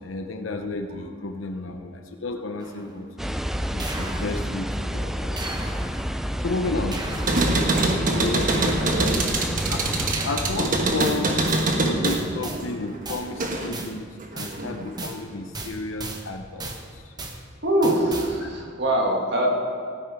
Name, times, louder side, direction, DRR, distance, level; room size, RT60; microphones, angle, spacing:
voice 1, 0.0-3.1 3.4-5.8 6.4-7.0 8.1-9.1 9.7-9.8 10.2-14.1 14.3-17.1 18.4-18.5, left 2 dB, 90° left, 5 dB, 0.8 m, -32 dB
sound 1, 2.6-3.0 3.8-4.8 5.4-6.3 6.9-7.8 8.5-9.4 10.1-11.7 12.0-12.6 13.0-13.3 13.7-13.9 14.4-14.6 15.0-15.2 15.5-16.3 16.6-16.8 17.2-17.4 17.8-18.3, right 2 dB, 20° right, 1.1 m, -36 dB
sound 2, 3.2-10.1, equal, ahead, 0.3 m, -29 dB
sound 3, 7.1-13.8 14.2-15.0, right 2 dB, 45° right, 1.3 m, -24 dB
voice 2, 8.8-9.1 17.6-19.5, right 1 dB, 60° right, -1 dB, 2.5 m, -23 dB
16.5 x 8.9 x 4.8 m, 2.3 s
head